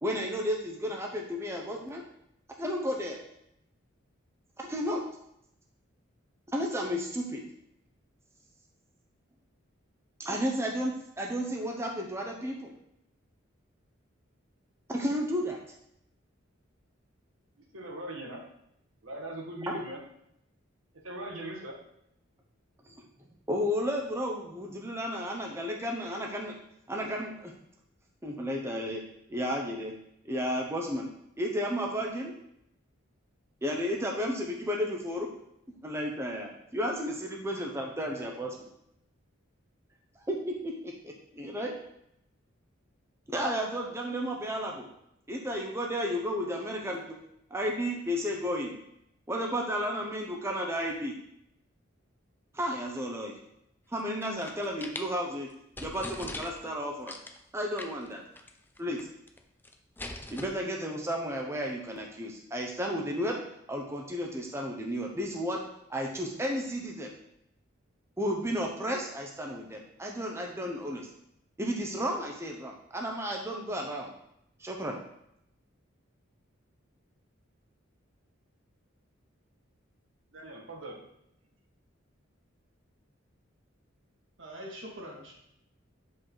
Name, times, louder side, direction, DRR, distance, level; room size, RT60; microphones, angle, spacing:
voice 1, 0.0-2.0 2.6-3.2 4.6-5.0 6.5-7.4 10.2-12.7 14.9-15.6 19.7-19.8 22.9-23.0 23.5-26.6 26.9-27.5 28.2-29.0 29.3-29.9 30.2-31.1 31.4-32.3 33.6-35.3 35.8-38.7 40.3-41.8 43.3-44.9 45.3-47.2 47.5-48.7 49.3-51.1 52.5-53.3 53.9-55.5 55.8-57.1 57.5-58.2 58.8-59.1 60.3-63.4 63.7-65.6 65.9-67.1 68.2-71.1 71.6-74.1 74.6-75.0, equal, 15° right, 0 dB, 0.8 m, -33 dB
voice 2, 17.6-18.4 19.0-20.0 21.0-21.7 80.3-81.0, right 1 dB, 85° right, 0 dB, 1.7 m, -40 dB
sound 1, 54.0-55.1 55.5-55.6 55.8-56.7 57.1-57.4 57.8-58.1 58.4-58.5 58.8-59.4 59.6-60.5, left 2 dB, 10° left, 0.5 m, -41 dB
voice 3, 84.4-85.4, equal, 65° right, -1 dB, 2.1 m, -43 dB
8.1 x 5.2 x 3.9 m, 0.77 s
head